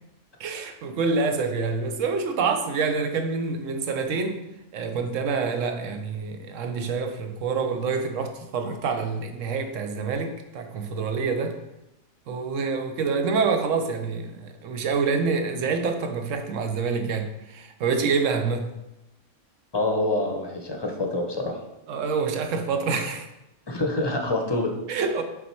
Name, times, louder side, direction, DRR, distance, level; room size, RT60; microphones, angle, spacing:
voice 1, 0.4-4.4 4.7-11.6 12.3-18.7 21.9-23.3 24.9-25.2, right 4 dB, 80° right, 1.1 m, -27 dB
voice 2, 19.7-21.6 23.7-24.7, left 2 dB, 25° left, 0.6 m, -26 dB
5.9 x 3.9 x 4.5 m
omnidirectional pair, 1.3 m